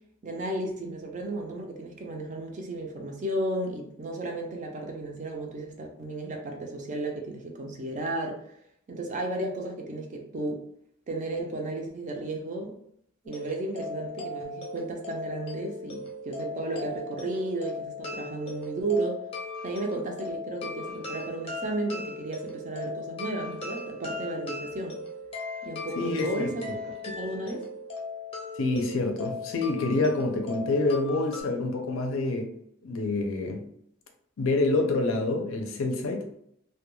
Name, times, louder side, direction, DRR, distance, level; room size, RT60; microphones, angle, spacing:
voice 1, 0.2-8.5 8.9-10.6 11.1-12.7 13.2-19.2 19.6-25.0 25.6-26.8 27.1-27.7, right 2 dB, 35° right, 2 dB, 0.4 m, -33 dB
sound 1, 13.3-31.4, left 3 dB, 30° left, 0.6 m, -38 dB
voice 2, 26.0-26.5 28.6-32.5 32.8-33.6 34.4-36.4, left 2 dB, 70° left, 4 dB, 0.5 m, -27 dB
2.2 x 2.1 x 3.0 m, 0.71 s
head